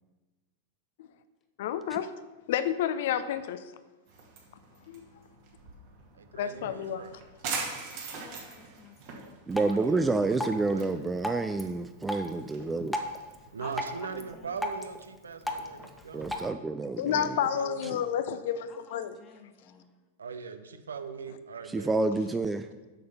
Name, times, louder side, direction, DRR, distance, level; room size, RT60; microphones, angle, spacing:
voice 1, 1.6-2.1 2.5-3.6 4.9-5.0 6.4-7.1 17.0-19.2, left 9 dB, 55° left, 12 dB, 0.5 m, -30 dB
sound 1, 4.1-13.7, right 5 dB, 45° right, 2.0 m, -42 dB
voice 2, 6.1-7.1 9.6-10.9 13.5-16.3 17.2-17.9 20.2-21.9 22.4-22.7, right 6 dB, 70° right, 10 dB, 0.7 m, -41 dB
voice 3, 7.9-9.4 13.4-14.6 18.7-19.9, left 6 dB, 30° left, 5 dB, 1.3 m, -51 dB
Drip, 9.5-16.5, left 1 dB, 5° left, 1.0 m, -38 dB
voice 4, 9.5-13.0 16.1-17.4 21.7-22.7, right 3 dB, 10° right, 9 dB, 0.4 m, -29 dB
8.1 x 6.6 x 5.6 m, 1.2 s
figure-of-eight pair, 90°, 0 cm